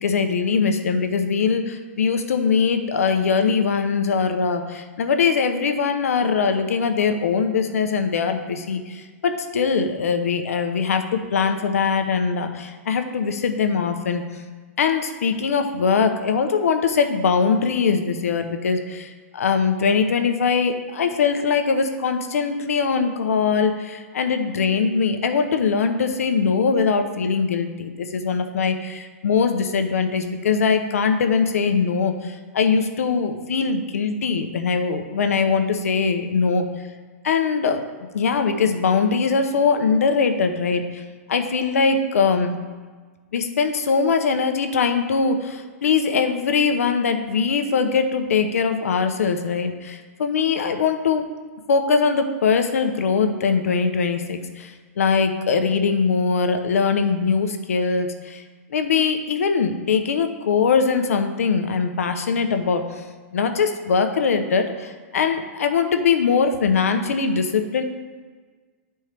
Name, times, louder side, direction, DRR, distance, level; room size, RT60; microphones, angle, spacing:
voice 1, 0.0-14.2 14.8-36.7 37.2-37.8 38.1-41.0 41.3-42.6 43.3-51.3 51.7-58.4 58.7-63.0 63.3-67.8, left 5 dB, 80° left, 7 dB, 0.8 m, -21 dB
10.5 x 4.4 x 3.4 m, 1.4 s
hypercardioid pair, 180°, 8 cm